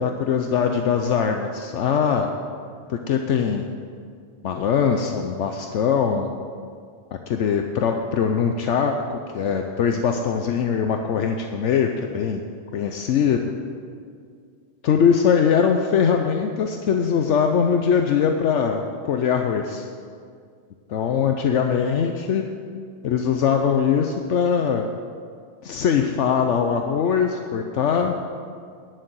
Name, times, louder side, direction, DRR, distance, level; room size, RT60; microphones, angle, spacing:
voice 1, 0.0-2.3 2.9-3.6 4.4-6.3 7.3-12.4 12.7-13.4 14.8-19.9 20.9-22.4 23.0-24.9 25.6-28.1, left 7 dB, 75° left, 4 dB, 1.0 m, -21 dB
11.5 x 6.6 x 8.0 m, 2.1 s
omnidirectional pair, 1.3 m